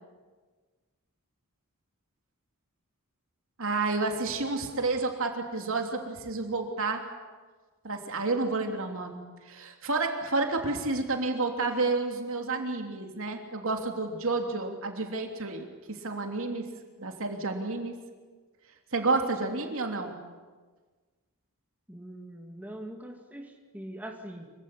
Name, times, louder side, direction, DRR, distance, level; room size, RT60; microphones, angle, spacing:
voice 1, 3.6-7.0 7.8-16.7 17.0-18.0 18.9-20.2, right 3 dB, 65° right, 3 dB, 3.1 m, -30 dB
voice 2, 21.9-24.5, right 1 dB, 10° right, 2 dB, 2.3 m, -42 dB
25.5 x 16.5 x 9.9 m, 1.4 s
head